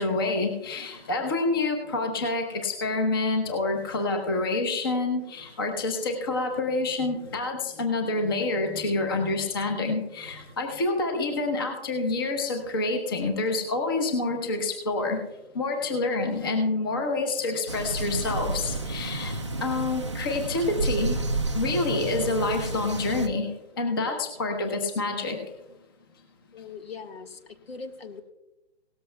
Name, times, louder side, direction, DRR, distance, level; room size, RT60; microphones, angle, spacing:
voice 1, 0.0-15.2 15.5-21.2 21.5-23.5 23.8-25.4, left 3 dB, 20° left, 5 dB, 0.9 m, -27 dB
sound 1, 17.7-23.3, right 2 dB, 30° right, 0.4 m, -31 dB
voice 2, 26.5-28.2, left 5 dB, 65° left, 8 dB, 1.3 m, -41 dB
17.5 x 13.5 x 2.2 m, 0.98 s
hypercardioid pair, 170°, 32 cm